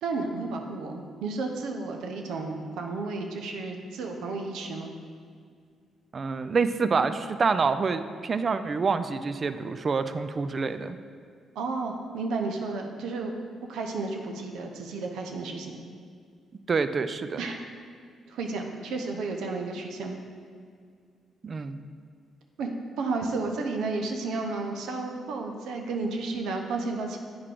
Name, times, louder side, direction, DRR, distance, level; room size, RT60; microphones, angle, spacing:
voice 1, 0.0-4.9 11.5-13.3 13.7-15.7 17.4-17.6 18.3-20.2 22.6-22.7 23.0-27.2, right 3 dB, 80° right, 3 dB, 0.8 m, -32 dB
voice 2, 6.1-11.0 16.7-17.5 21.4-21.8, right 4 dB, 45° right, 11 dB, 0.4 m, -27 dB
8.5 x 4.7 x 3.8 m, 2.1 s
supercardioid pair, 70°, 0 cm